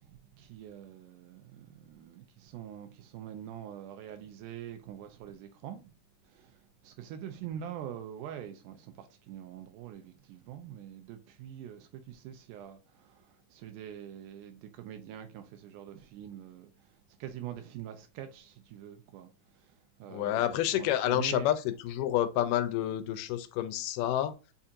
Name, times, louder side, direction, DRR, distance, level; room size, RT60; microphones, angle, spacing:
voice 1, 0.0-5.9 6.2-21.5, right 10 dB, 85° right, 2.1 m, -45 dB
voice 2, 20.1-24.3, left 12 dB, 90° left, 2.2 m, -29 dB
7.0 x 2.5 x 2.7 m
omnidirectional pair, 3.7 m